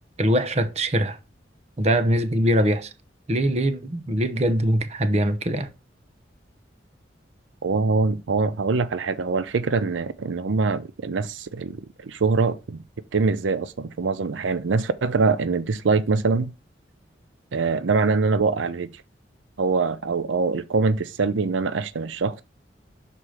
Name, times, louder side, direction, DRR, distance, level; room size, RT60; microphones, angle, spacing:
voice 1, 0.2-1.2 1.8-2.9 3.3-5.7, right 1 dB, 35° right, 0.7 m, -22 dB
voice 2, 7.6-12.8 13.1-16.5 17.5-18.9 19.6-22.4, right 4 dB, 85° right, 0.5 m, -23 dB
6.4 x 4.4 x 4.9 m
head